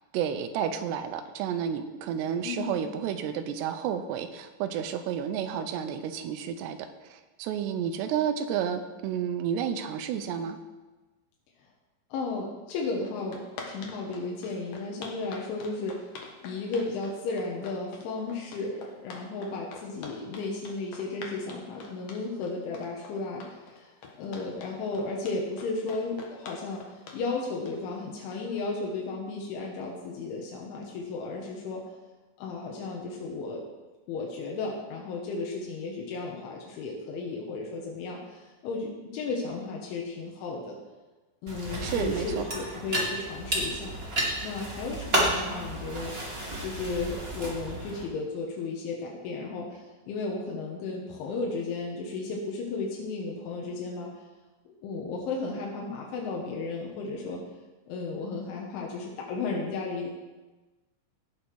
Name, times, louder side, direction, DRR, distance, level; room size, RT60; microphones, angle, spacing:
voice 1, 0.1-10.6 41.8-42.4, right 8 dB, 80° right, 7 dB, 2.7 m, -31 dB
voice 2, 2.4-2.8 12.1-16.1 16.4-23.9 24.2-31.8 32.4-33.6 34.1-40.8 41.4-43.9 44.4-46.1 46.6-54.1 54.7-57.4 57.9-60.1, left 3 dB, 90° left, -2 dB, 3.8 m, -34 dB
sound 1, 12.7-12.8 13.0-28.6, left 4 dB, 65° left, 1.8 m, -45 dB
sound 2, 41.5-48.0, right 1 dB, 20° right, 1.5 m, -31 dB
18.0 x 6.5 x 4.8 m, 1.2 s
omnidirectional pair, 5.3 m